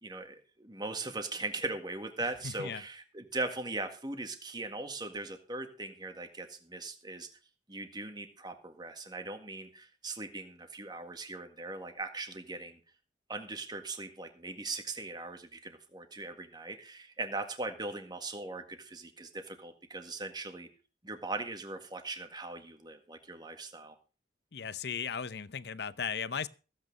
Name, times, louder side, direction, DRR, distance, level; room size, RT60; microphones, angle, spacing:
voice 1, 0.0-7.3 7.7-12.8 13.3-20.7 21.0-24.0, right 2 dB, 25° right, 1.8 m, -40 dB
voice 2, 2.2-2.8 24.5-26.5, left 6 dB, 60° left, 0.7 m, -37 dB
15.5 x 8.7 x 5.4 m
head